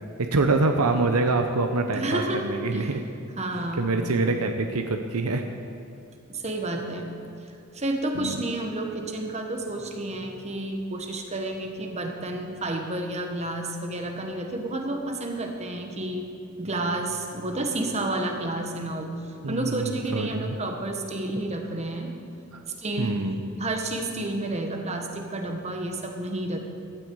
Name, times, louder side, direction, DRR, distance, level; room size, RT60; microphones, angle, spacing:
voice 1, 0.2-3.0 3.8-5.4 8.1-8.4 19.4-20.6 22.5-22.6 23.0-23.4, right 3 dB, 85° right, 6 dB, 0.8 m, -25 dB
voice 2, 1.9-2.9 3.4-3.9 6.3-7.1 7.7-16.3 16.6-19.1 19.5-22.1 22.8-23.2 23.6-26.6, right 1 dB, 30° right, 3 dB, 1.4 m, -30 dB
16.5 x 12.5 x 4.8 m, 2.6 s
head